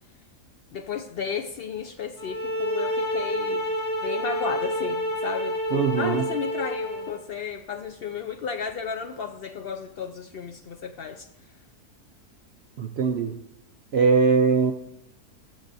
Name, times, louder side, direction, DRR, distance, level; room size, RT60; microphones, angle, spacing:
voice 1, 0.7-3.6 4.0-11.3, left 6 dB, 70° left, 0.5 m, -33 dB
sound 1, 2.2-7.1, equal, 10° left, 3.2 m, -28 dB
voice 2, 5.7-6.2 12.8-13.4 13.9-14.7, right 5 dB, 65° right, 0.6 m, -21 dB
19.0 x 7.2 x 2.7 m
omnidirectional pair, 1.6 m